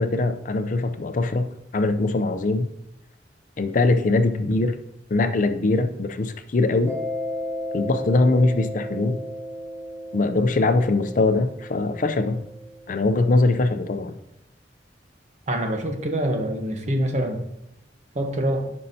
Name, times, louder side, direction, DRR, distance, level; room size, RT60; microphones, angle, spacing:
voice 1, 0.0-1.5 1.7-2.7 3.6-4.7 5.1-7.0 7.7-9.2 10.1-12.4 12.9-14.1, left 2 dB, 45° left, 9 dB, 0.5 m, -22 dB
Mallet percussion, 6.9-13.2, left 1 dB, 15° right, 1.7 m, -34 dB
voice 2, 15.5-17.4 18.1-18.7, right 1 dB, 40° right, 4 dB, 1.0 m, -25 dB
9.6 x 5.4 x 2.7 m, 0.82 s
head